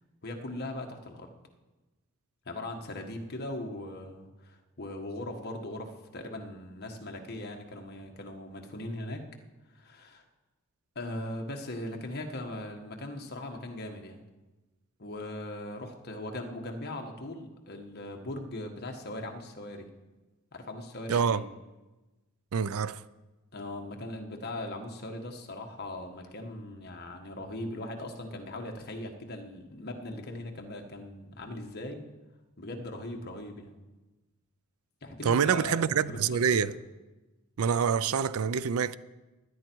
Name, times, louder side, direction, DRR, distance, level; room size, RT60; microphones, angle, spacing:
voice 1, 0.2-1.3 2.4-9.2 9.7-10.2 10.9-14.2 15.0-19.9 20.5-21.4 23.5-32.0 32.6-33.7 35.0-36.7, left 1 dB, 50° left, 1.5 m, -39 dB
voice 2, 21.1-21.4 22.5-23.0 35.2-36.7 37.6-39.0, right 7 dB, 80° right, 0.4 m, -26 dB
17.5 x 10.5 x 4.6 m
head